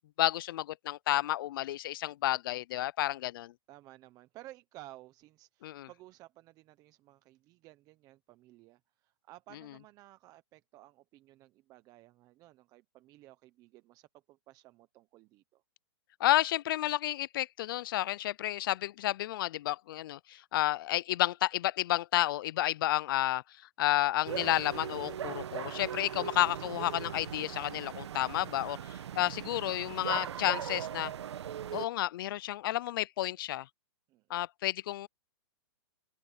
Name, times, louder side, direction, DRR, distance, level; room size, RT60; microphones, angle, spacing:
voice 1, 0.2-3.5 5.6-5.9 16.2-23.4 23.8-28.8 29.2-31.1 31.7-33.7 34.3-35.1, left 14 dB, 50° left, 0.4 m, -31 dB
voice 2, 3.7-15.6 34.1-34.5, right 16 dB, 25° right, 1.0 m, -55 dB
sound 1, 24.2-31.9, right 9 dB, 75° right, 1.3 m, -39 dB
open air
hypercardioid pair, 150°, 14 cm